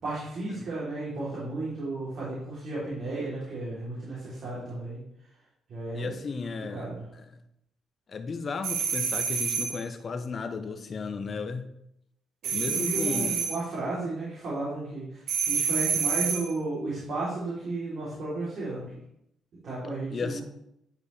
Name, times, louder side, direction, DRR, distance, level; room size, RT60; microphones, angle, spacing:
voice 1, 0.0-5.0 5.7-6.1 6.7-7.0 12.4-18.8 19.6-20.4, right 2 dB, 60° right, -8 dB, 3.2 m, -34 dB
voice 2, 5.9-7.4 8.1-11.7 12.5-13.4 20.1-20.4, left 4 dB, 45° left, 9 dB, 0.9 m, -34 dB
sound 1, 8.6-9.8 12.4-13.6 15.3-16.5, right 6 dB, 85° right, 0.7 m, -28 dB
10.5 x 5.2 x 3.3 m, 0.77 s
cardioid pair, 90°, 0 cm